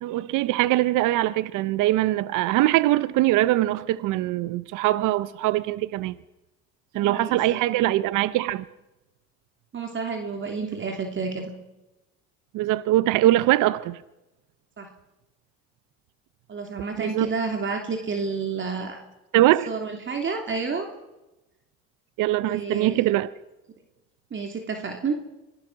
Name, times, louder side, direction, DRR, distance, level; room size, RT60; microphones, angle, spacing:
voice 1, 0.0-6.1 6.9-8.6 12.5-14.0 17.0-17.3 19.3-19.7 22.2-23.3, right 15 dB, 75° right, 0.8 m, -22 dB
voice 2, 6.9-7.8 9.7-11.5 14.8-14.9 16.5-19.0 19.7-20.9 22.4-23.0 24.3-25.1, right 4 dB, 40° right, 3.1 m, -30 dB
25.0 x 18.0 x 6.2 m
cardioid pair, 95°, 31 cm